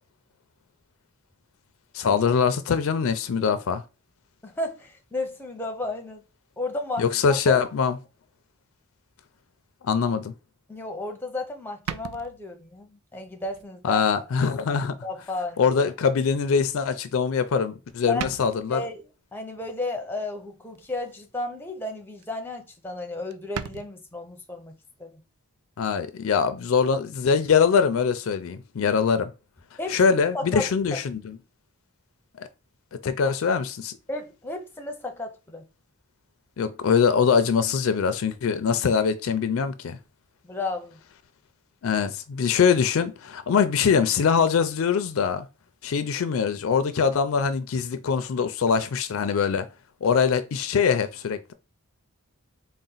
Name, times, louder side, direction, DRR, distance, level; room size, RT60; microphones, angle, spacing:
voice 1, 1.9-3.8 7.0-8.0 9.8-10.3 13.8-15.0 15.6-18.8 25.8-29.3 29.9-31.4 32.4-32.5 33.0-33.9 36.6-40.0 41.8-45.5 45.8-49.7 50.0-51.5, left 6 dB, 65° left, 0.4 m, -23 dB
voice 2, 4.4-6.2 6.6-7.6 10.7-14.0 15.0-15.6 18.1-18.3 18.7-19.0 19.3-24.7 25.0-25.2 29.8-31.0 34.1-35.6 40.4-41.0, left 2 dB, 10° left, 0.5 m, -33 dB
sound 1, 11.0-11.1 11.9-12.8 13.4-13.7 14.2-14.3 15.5-15.6 17.3-17.6 17.9-18.0 18.2-18.8 20.8-21.2 21.6-21.9 22.2-22.3 22.5-22.6 22.9-23.0 23.3-23.9, right 8 dB, 85° right, 0.3 m, -37 dB
4.0 x 2.1 x 3.8 m
head